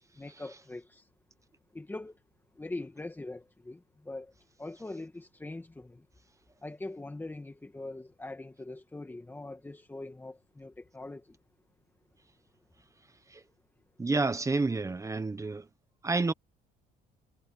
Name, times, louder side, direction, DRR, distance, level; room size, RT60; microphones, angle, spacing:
voice 1, 0.1-1.1 1.7-2.2 2.5-4.3 4.6-6.1 6.6-11.4, left 2 dB, 10° left, 2.1 m, -42 dB
voice 2, 14.0-15.6 16.0-16.3, right 3 dB, 20° right, 1.2 m, -29 dB
cardioid pair, 110°, 17 cm